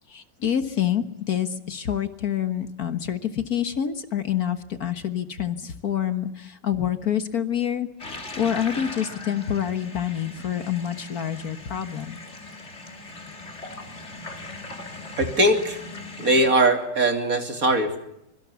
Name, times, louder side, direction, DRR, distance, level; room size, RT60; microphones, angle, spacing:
voice 1, 0.1-7.9 8.4-12.2, left 9 dB, 55° left, 9 dB, 1.8 m, -27 dB
sound 1, 8.0-16.5, left 2 dB, 40° left, 3.0 m, -39 dB
voice 2, 15.2-15.8 16.2-18.0, right 1 dB, 50° right, 5 dB, 3.3 m, -21 dB
25.0 x 24.0 x 7.1 m, 0.80 s
omnidirectional pair, 1.9 m